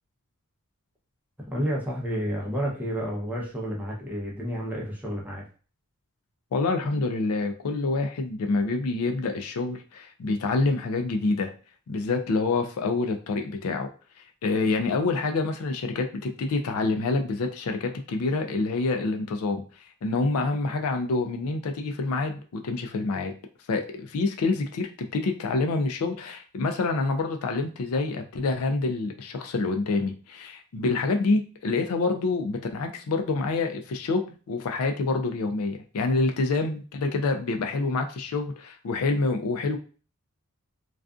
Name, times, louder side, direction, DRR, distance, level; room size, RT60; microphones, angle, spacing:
voice 1, 1.4-5.4 36.2-36.3, equal, 5° right, -3 dB, 0.7 m, -30 dB
voice 2, 6.5-11.5 11.9-13.9 14.4-19.6 20.0-23.3 23.7-39.8, left 3 dB, 70° left, 5 dB, 0.4 m, -27 dB
2.4 x 2.3 x 2.4 m, 0.37 s
head